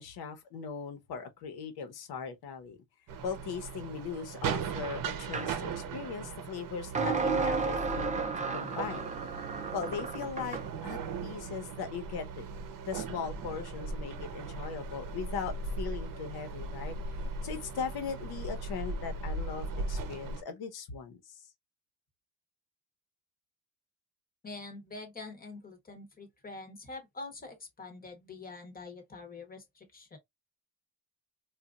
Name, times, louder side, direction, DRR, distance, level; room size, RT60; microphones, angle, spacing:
voice 1, 0.0-2.8 3.2-8.1 8.5-9.1 9.7-12.4 12.9-16.9 17.4-21.2, left 6 dB, 80° left, 1.1 m, -39 dB
sound 1, 3.1-20.4, right 4 dB, 60° right, 0.8 m, -38 dB
sound 2, 5.3-5.5 7.0-10.7, right 4 dB, 20° right, 0.4 m, -32 dB
voice 2, 24.4-30.2, left 3 dB, 25° left, 1.0 m, -45 dB
4.1 x 2.5 x 2.4 m
cardioid pair, 160°, 38 cm